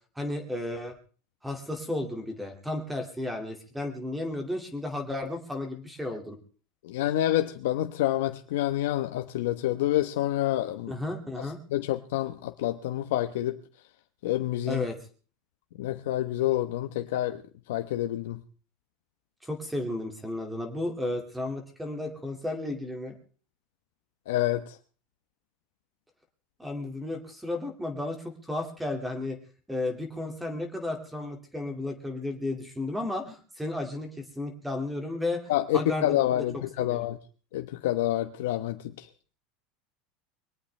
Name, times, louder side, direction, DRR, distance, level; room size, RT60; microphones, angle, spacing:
voice 1, 0.2-0.9 1.4-6.4 10.9-11.6 14.7-15.0 19.4-23.2 26.6-29.4 29.7-36.2 36.8-37.1, left 2 dB, 5° right, 2.3 m, -33 dB
voice 2, 6.8-10.9 11.7-13.6 14.2-14.8 15.8-17.4 17.7-18.4 24.3-24.8 35.5-37.2 37.5-39.1, left 14 dB, 90° left, 1.1 m, -28 dB
22.5 x 19.0 x 3.3 m
supercardioid pair, 170°, 0 cm